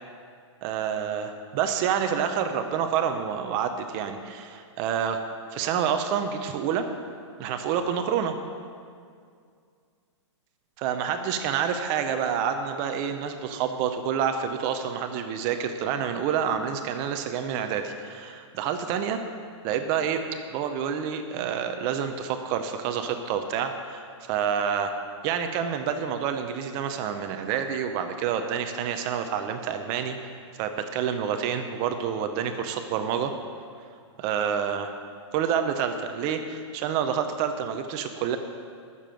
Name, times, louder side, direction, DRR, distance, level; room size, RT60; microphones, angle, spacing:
voice 1, 0.6-5.2 5.5-6.8 7.4-8.3 10.8-19.2 19.6-20.2 20.5-24.9 25.2-30.2 30.6-33.3 34.2-34.9 35.3-38.4, right 8 dB, 25° right, 7 dB, 0.6 m, -28 dB
12.5 x 6.9 x 7.6 m, 2.2 s
hypercardioid pair, 165°, 16 cm